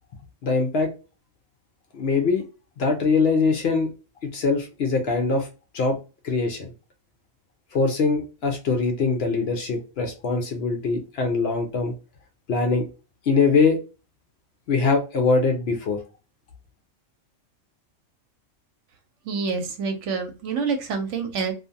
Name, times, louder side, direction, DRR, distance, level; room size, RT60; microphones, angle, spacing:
voice 1, 0.4-0.9 1.9-2.4 2.8-3.9 4.2-5.5 5.7-6.0 6.2-6.7 7.7-11.9 12.5-12.9 13.3-13.8 14.7-16.0, left 4 dB, 65° left, 4 dB, 0.7 m, -22 dB
voice 2, 19.2-21.5, right 5 dB, 70° right, 4 dB, 1.0 m, -27 dB
2.4 x 2.3 x 2.6 m, 0.31 s
omnidirectional pair, 1.3 m